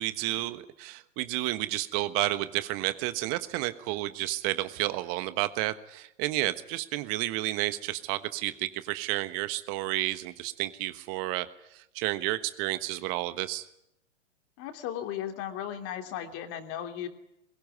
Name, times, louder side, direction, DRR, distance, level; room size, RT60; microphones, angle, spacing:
voice 1, 0.0-11.5 11.7-13.6, right 17 dB, 35° right, 13 dB, 1.3 m, -31 dB
voice 2, 14.6-17.1, left 10 dB, 35° left, 7 dB, 3.1 m, -36 dB
22.5 x 21.5 x 9.6 m, 0.80 s
figure-of-eight pair, 110°, 39 cm